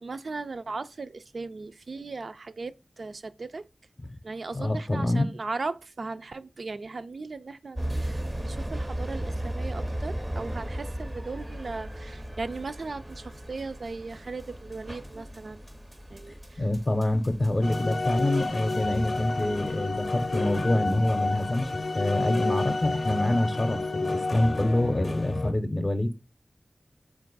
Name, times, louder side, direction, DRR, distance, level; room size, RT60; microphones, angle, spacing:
voice 1, 0.0-3.7 4.2-15.7 16.1-16.6, right 3 dB, 80° right, 0.3 m, -37 dB
voice 2, 4.5-5.3 16.3-26.1, left 1 dB, 40° left, 0.5 m, -26 dB
sound 1, 7.7-21.7, right 1 dB, 15° right, 0.4 m, -37 dB
sound 2, 17.6-25.5, left 3 dB, 80° left, 0.5 m, -30 dB
4.4 x 2.5 x 3.8 m
wide cardioid pair, 80°, 0 cm